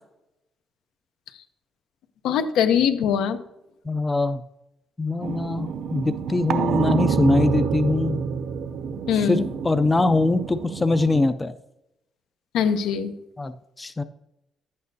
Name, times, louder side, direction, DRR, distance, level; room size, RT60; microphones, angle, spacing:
voice 1, 2.2-3.4 9.1-9.4 12.5-13.1, left 8 dB, 85° left, 9 dB, 0.7 m, -22 dB
voice 2, 3.9-4.4 5.0-8.2 9.3-11.5 13.4-13.5 13.8-14.0, left 3 dB, 15° left, 10 dB, 0.3 m, -22 dB
sound 1, 5.2-11.3, right 6 dB, 65° right, 0.5 m, -28 dB
11.0 x 8.5 x 2.7 m, 0.89 s
cardioid pair, 150°, 0 cm